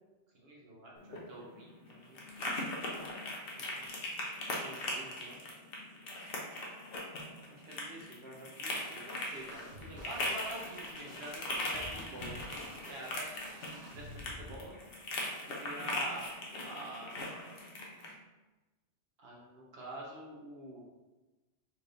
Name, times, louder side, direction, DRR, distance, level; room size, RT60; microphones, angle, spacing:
voice 1, 0.3-2.5 3.5-3.9 4.4-5.6 7.5-13.3 13.6-14.7 15.6-16.3 16.6-17.2 19.2-20.8, right 1 dB, 60° right, -3 dB, 1.2 m, -47 dB
sound 1, 1.0-18.1, left 1 dB, 60° left, 0.9 m, -40 dB
sound 2, 9.3-14.6, equal, 80° right, 1.1 m, -51 dB
4.4 x 3.3 x 2.6 m, 1.1 s
omnidirectional pair, 1.2 m